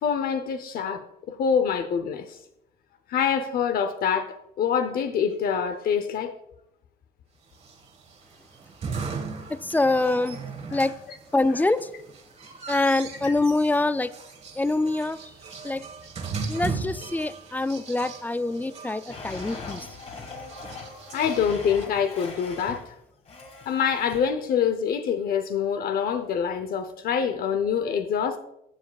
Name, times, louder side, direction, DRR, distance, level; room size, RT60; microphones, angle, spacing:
voice 1, 0.0-1.0 1.3-2.4 3.1-6.3 10.7-10.9 11.6-11.7 21.1-22.9 23.7-28.4, left 7 dB, 60° left, 7 dB, 0.7 m, -25 dB
sound 1, 7.6-21.9, right 4 dB, 40° right, 1.5 m, -38 dB
voice 2, 9.5-10.4 10.7-10.9 11.3-11.9 12.7-14.1 14.6-15.2 15.6-15.9 16.5-19.9, left 2 dB, 10° left, 14 dB, 0.3 m, -25 dB
Domestic sounds home sounds, 19.1-22.9 23.3-24.2, left 4 dB, 40° left, 1.9 m, -40 dB
15.5 x 7.4 x 2.3 m, 0.81 s
cardioid pair, 110°, 17 cm